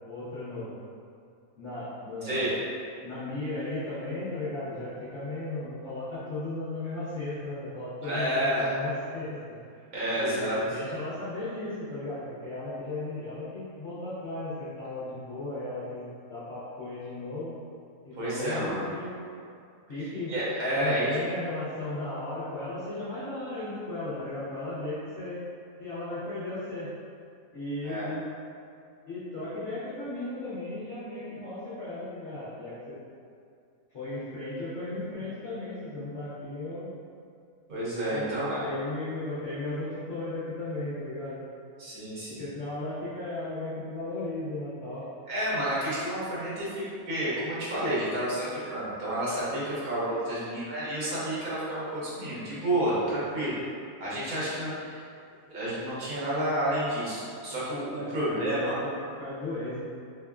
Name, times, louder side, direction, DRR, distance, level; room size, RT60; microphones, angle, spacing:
voice 1, 0.1-0.7 1.6-2.6 3.0-9.6 10.1-17.6 18.0-19.2 19.9-20.4 20.7-25.4 25.8-26.9 27.5-28.3 29.1-33.0 33.9-36.9 38.1-41.4 42.4-45.0 50.3-50.5 53.1-53.3 58.0-59.8, left 2 dB, 55° left, -11 dB, 1.0 m, -36 dB
voice 2, 8.0-8.7 9.9-10.6 18.2-18.8 20.3-21.1 27.8-28.1 37.7-38.6 41.8-42.4 45.3-53.5 54.0-55.0 55.5-58.8, right 1 dB, 75° right, -9 dB, 1.6 m, -30 dB
3.6 x 3.5 x 2.3 m, 2.4 s
omnidirectional pair, 1.5 m